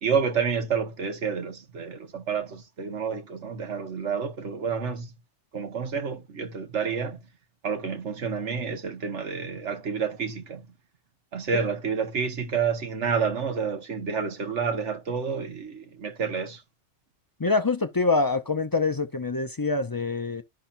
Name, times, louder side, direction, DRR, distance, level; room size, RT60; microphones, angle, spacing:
voice 1, 0.0-5.1 5.5-7.2 7.6-10.6 11.3-16.6, right 6 dB, 90° right, 1.6 m, -29 dB
voice 2, 17.4-20.4, left 3 dB, 35° left, 0.3 m, -25 dB
12.5 x 5.7 x 2.6 m
omnidirectional pair, 1.2 m